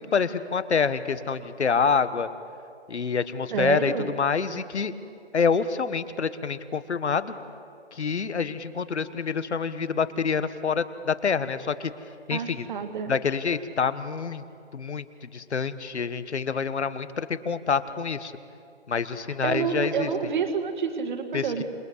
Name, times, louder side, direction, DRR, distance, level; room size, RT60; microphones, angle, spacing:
voice 1, 0.0-2.3 2.9-4.9 5.3-7.3 7.9-11.9 12.3-12.7 13.1-14.4 14.7-18.3 18.9-20.1 21.3-21.6, left 5 dB, 75° left, 13 dB, 1.4 m, -27 dB
voice 2, 3.5-4.1 12.3-13.1 19.4-21.6, right 6 dB, 45° right, 7 dB, 2.1 m, -28 dB
27.5 x 20.0 x 8.1 m, 2.5 s
hypercardioid pair, 155°, 34 cm